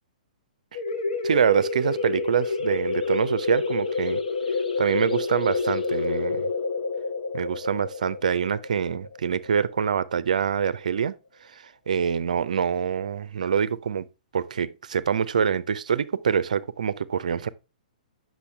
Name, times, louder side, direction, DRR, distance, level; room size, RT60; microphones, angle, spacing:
sound 1, 0.7-10.1, left 4 dB, 75° left, 1.4 m, -28 dB
voice 1, 1.2-4.2 4.8-6.5 7.3-11.1 11.4-14.1 14.3-17.5, right 7 dB, 60° right, 0.5 m, -25 dB
8.3 x 6.2 x 3.3 m
figure-of-eight pair, 115°, 4 cm